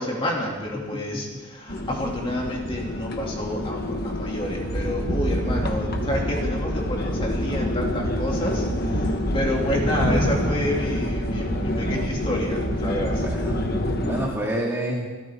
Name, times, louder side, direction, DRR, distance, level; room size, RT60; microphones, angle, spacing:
voice 1, 0.0-13.2, left 1 dB, 25° left, -1 dB, 2.7 m, -29 dB
voice 2, 0.7-1.2 13.2-13.6 13.9-15.1, right 1 dB, 10° right, -2 dB, 2.0 m, -29 dB
sound 1, 1.7-14.3, left 1 dB, 45° left, 1.3 m, -28 dB
sound 2, 4.6-14.0, right 1 dB, 80° right, 1.9 m, -29 dB
25.0 x 14.0 x 3.7 m, 1.3 s
head